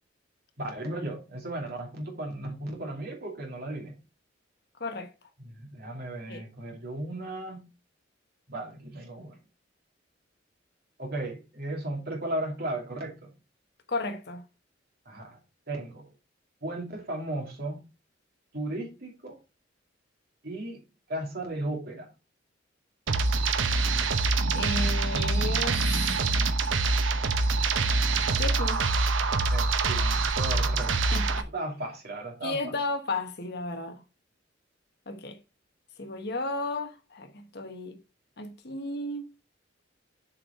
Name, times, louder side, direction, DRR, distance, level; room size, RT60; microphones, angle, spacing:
voice 1, 0.6-4.0 5.4-7.7 8.5-9.4 11.0-13.3 15.1-15.4 15.7-16.1 16.6-17.8 18.5-19.4 20.4-20.8 21.1-22.1 29.5-31.2 31.5-32.7, right 1 dB, 55° right, 2.6 m, -35 dB
voice 2, 4.8-5.1 6.3-6.4 13.9-14.4 24.5-25.8 28.4-28.9 31.1-31.5 32.4-34.0 35.1-35.4 36.0-38.0 38.4-39.3, left 2 dB, 60° left, 1.3 m, -34 dB
sound 1, 23.1-31.4, right 3 dB, 85° right, 0.8 m, -25 dB
7.5 x 4.8 x 4.5 m
head